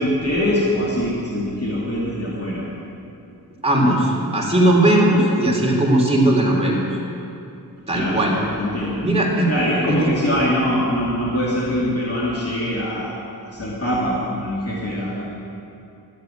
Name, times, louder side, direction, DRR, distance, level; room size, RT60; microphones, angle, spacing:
voice 1, 0.0-2.6 7.9-9.0 9.5-13.1 13.4-15.2, equal, 40° left, -6 dB, 2.7 m, -23 dB
voice 2, 3.6-6.8 7.9-8.3 9.0-9.5 10.0-10.1, right 1 dB, 15° right, -3 dB, 3.4 m, -17 dB
14.0 x 8.2 x 9.2 m, 2.7 s
wide cardioid pair, 95°, 37 cm